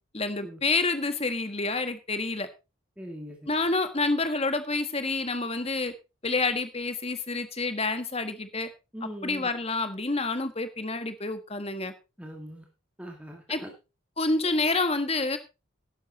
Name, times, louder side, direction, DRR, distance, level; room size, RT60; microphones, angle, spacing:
voice 1, 0.1-2.5 3.5-5.9 6.2-8.7 9.2-11.9 13.5-13.6 14.2-15.4, left 3 dB, 30° left, 10 dB, 1.5 m, -28 dB
voice 2, 3.0-3.5 8.9-9.5 12.2-12.7 13.0-13.7, equal, 5° right, 2 dB, 2.0 m, -41 dB
12.0 x 10.5 x 4.1 m, 0.29 s
head